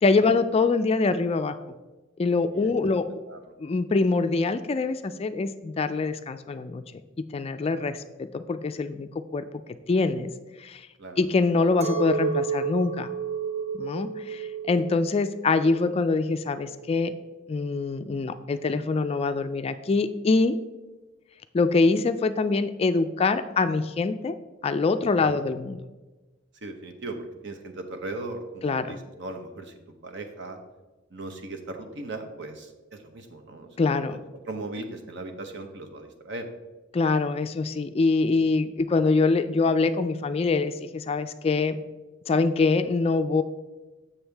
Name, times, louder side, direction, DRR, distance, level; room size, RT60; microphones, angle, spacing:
voice 1, 0.0-1.6 2.2-3.1 3.6-6.8 7.3-9.5 9.9-10.3 10.6-10.9 11.2-13.1 13.7-17.1 17.5-20.6 21.5-24.3 24.6-25.8 28.6-29.0 33.8-34.2 36.9-41.7 42.3-43.4, left 3 dB, 30° left, 10 dB, 0.3 m, -24 dB
Chink clink, 11.8-17.3, right 5 dB, 30° right, 0.8 m, -32 dB
voice 2, 26.6-29.7 30.0-30.6 31.1-34.2 34.5-36.5, right 2 dB, 60° right, 6 dB, 0.9 m, -38 dB
7.1 x 7.1 x 3.4 m, 1.1 s
head